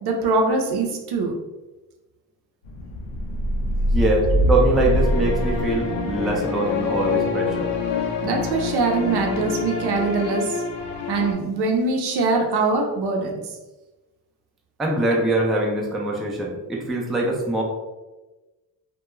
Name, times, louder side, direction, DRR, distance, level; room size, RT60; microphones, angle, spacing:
voice 1, 0.0-1.3 8.2-10.6 11.1-13.4, right 3 dB, 70° right, 2 dB, 0.6 m, -23 dB
sound 1, 2.6-11.3, left 2 dB, 85° left, 0.6 m, -24 dB
voice 2, 3.9-7.7 14.8-17.6, right 2 dB, ahead, -2 dB, 0.3 m, -23 dB
2.2 x 2.2 x 2.9 m, 1.1 s
cardioid pair, 95°, 42 cm